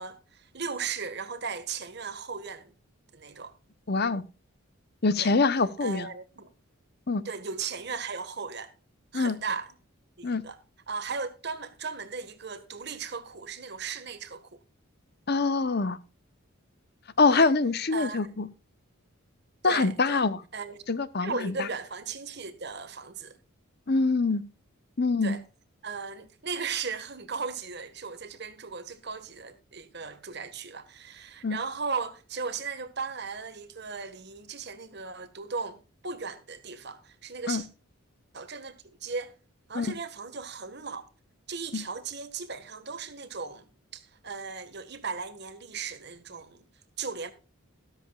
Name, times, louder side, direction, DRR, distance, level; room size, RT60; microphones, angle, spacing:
voice 1, 0.0-2.7 3.1-3.5 5.2-5.3 5.8-6.5 7.2-8.7 9.1-9.7 10.2-10.6 10.9-14.6 17.3-17.5 17.9-18.3 19.6-20.2 20.5-20.8 21.2-23.4 25.2-25.4 25.8-37.7 38.3-39.3 39.7-41.0 41.5-46.6 47.0-47.3, right 5 dB, 50° right, 1.6 m, -37 dB
voice 2, 3.9-4.2 5.0-6.1 7.1-7.2 9.1-9.4 10.2-10.4 15.3-16.0 17.2-18.5 19.6-20.4 20.9-21.7 23.9-24.4 25.0-25.4 31.4-31.6 37.5-37.6 39.7-39.9 41.7-41.8, left 3 dB, 45° left, 0.8 m, -24 dB
13.5 x 13.0 x 2.4 m
head